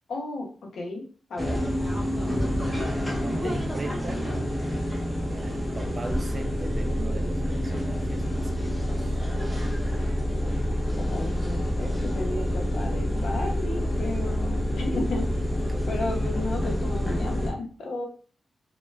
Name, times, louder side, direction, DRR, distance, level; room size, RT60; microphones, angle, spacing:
voice 1, 0.1-1.0 1.3-1.6 11.0-15.3 15.9-18.1, left 2 dB, 85° left, 0.6 m, -33 dB
sound 1, 1.4-17.5, equal, 5° left, 0.7 m, -27 dB
voice 2, 3.2-4.2 5.3-9.2 15.7-15.9 16.2-16.3, right 3 dB, 35° right, 0.4 m, -39 dB
3.0 x 2.1 x 2.2 m
wide cardioid pair, 100°, 0 cm